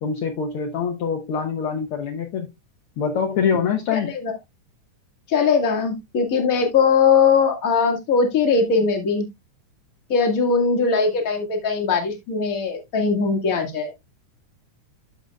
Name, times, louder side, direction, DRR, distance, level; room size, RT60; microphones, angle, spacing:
voice 1, 0.0-2.5 3.0-4.1, left 6 dB, 70° left, 1.3 m, -24 dB
voice 2, 3.9-4.3 5.3-9.3 10.1-13.9, left 5 dB, 35° left, 1.5 m, -20 dB
13.0 x 5.2 x 2.2 m
omnidirectional pair, 3.5 m